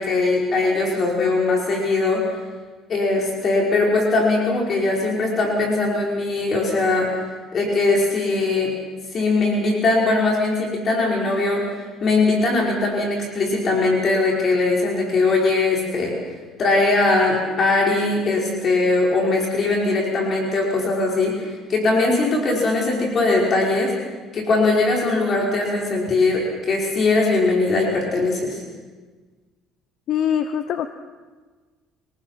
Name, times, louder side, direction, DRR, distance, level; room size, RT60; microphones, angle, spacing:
voice 1, 0.0-2.2 2.9-7.1 7.5-8.7 9.1-16.1 16.6-23.9 24.3-28.6, left 3 dB, 45° left, -2 dB, 5.5 m, -20 dB
voice 2, 30.1-30.9, left 9 dB, 60° left, 9 dB, 0.9 m, -22 dB
28.0 x 19.0 x 5.9 m, 1.4 s
cardioid pair, 105°, 0 cm